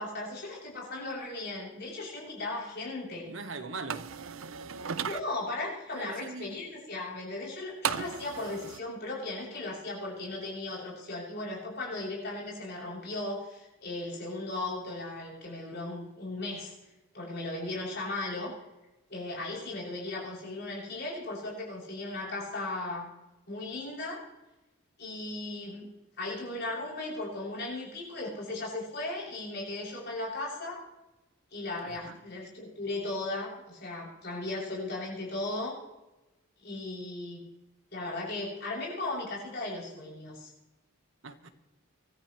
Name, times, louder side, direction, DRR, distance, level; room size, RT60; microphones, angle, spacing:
voice 1, 0.0-3.3 5.0-16.7 17.1-18.5 19.1-23.1 23.5-24.2 25.0-25.9 26.2-30.8 31.5-35.8 36.6-37.4 37.9-40.5, left 2 dB, 55° left, 7.4 m, -37 dB
voice 2, 3.2-4.1 5.9-6.6 31.8-32.2 41.2-41.5, right 3 dB, 65° right, 1.4 m, -41 dB
sound 1, 3.9-5.2 7.8-8.8, right 7 dB, 85° right, 0.7 m, -35 dB
25.0 x 14.0 x 3.3 m
head